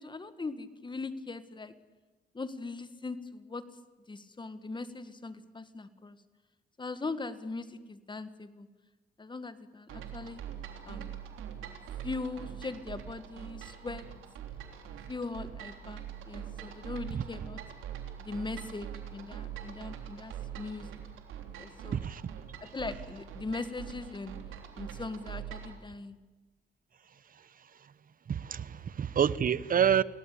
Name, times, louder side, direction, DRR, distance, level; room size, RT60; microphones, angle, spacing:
voice 1, 0.0-1.7 2.3-3.6 4.1-6.2 6.8-8.7 9.2-10.4 10.8-11.1 12.0-14.0 15.1-17.6 18.2-21.0 21.6-22.1 22.6-24.4 24.8-26.2, left 3 dB, 25° left, 1.9 m, -40 dB
sound 1, 9.9-25.8, right 9 dB, 90° right, 3.5 m, -43 dB
voice 2, 28.3-30.0, right 8 dB, 45° right, 1.0 m, -27 dB
29.0 x 19.0 x 8.7 m
cardioid pair, 90°, 20 cm